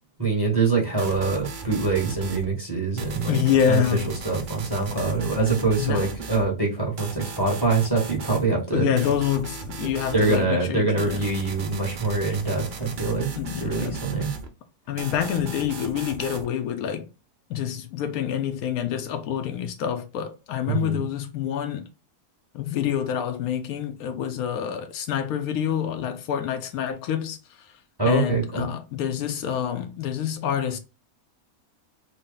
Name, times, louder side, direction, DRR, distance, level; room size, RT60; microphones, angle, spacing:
voice 1, 0.2-8.9 10.1-13.3 13.6-14.3 20.7-21.0 28.0-28.7, right 3 dB, 20° right, 1.0 m, -24 dB
sound 1, 1.0-2.4 3.0-6.5 7.0-8.5 9.0-10.4 11.0-14.5 15.0-16.5, right 4 dB, 55° right, 0.5 m, -37 dB
voice 2, 3.3-4.1 5.8-6.1 8.7-11.2 13.4-14.0 14.9-17.1 17.5-21.9 22.5-27.4 28.1-30.8, left 9 dB, 75° left, 1.0 m, -27 dB
3.7 x 2.1 x 3.8 m
omnidirectional pair, 1.6 m